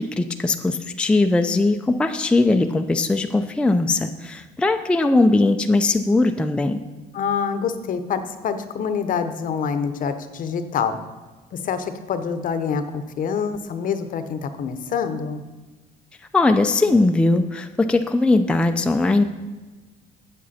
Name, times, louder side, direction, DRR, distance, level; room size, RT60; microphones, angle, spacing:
voice 1, 0.0-6.8 16.3-19.2, left 2 dB, 5° left, 6 dB, 0.4 m, -19 dB
voice 2, 7.1-11.0 11.5-15.4, left 6 dB, 55° left, 10 dB, 0.7 m, -26 dB
8.1 x 7.6 x 4.1 m, 1.2 s
cardioid pair, 110°, 17 cm